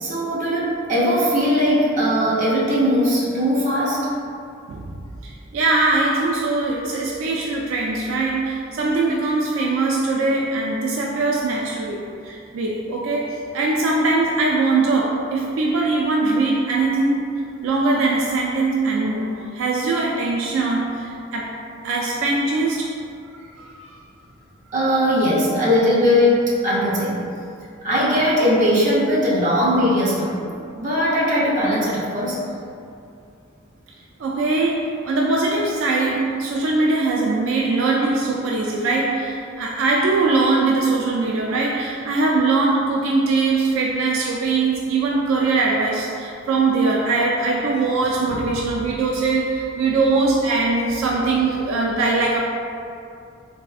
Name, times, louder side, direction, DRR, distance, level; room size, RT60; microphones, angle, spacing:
voice 1, 0.0-4.1 24.7-27.2 27.8-30.4 30.8-32.4, equal, 40° right, -7 dB, 0.6 m, -19 dB
voice 2, 5.2-17.3 17.6-21.6 21.8-22.9 23.6-23.7 34.2-52.4, right 3 dB, 75° right, -2 dB, 0.3 m, -21 dB
3.3 x 2.7 x 2.3 m, 2.5 s
head